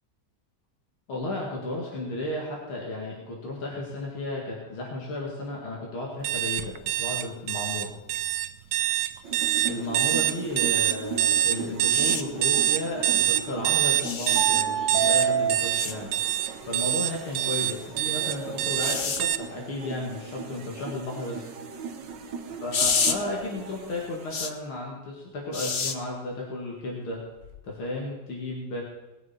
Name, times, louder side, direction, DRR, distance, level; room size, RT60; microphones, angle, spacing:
voice 1, 1.1-7.9 9.7-16.1 16.6-21.5 22.6-27.2 27.6-28.8, left 2 dB, 85° left, -2 dB, 3.0 m, -34 dB
sound 1, 6.2-19.4, right 12 dB, 85° right, 1.5 m, -25 dB
sound 2, 9.2-24.4, right 6 dB, 65° right, 1.7 m, -34 dB
sound 3, 11.9-12.2 14.0-14.4 15.8-15.9 18.8-19.2 22.7-23.2 24.3-24.5 25.5-25.9 27.4-27.6, left 5 dB, 65° left, 0.5 m, -27 dB
20.0 x 8.5 x 4.4 m, 1.0 s
omnidirectional pair, 2.2 m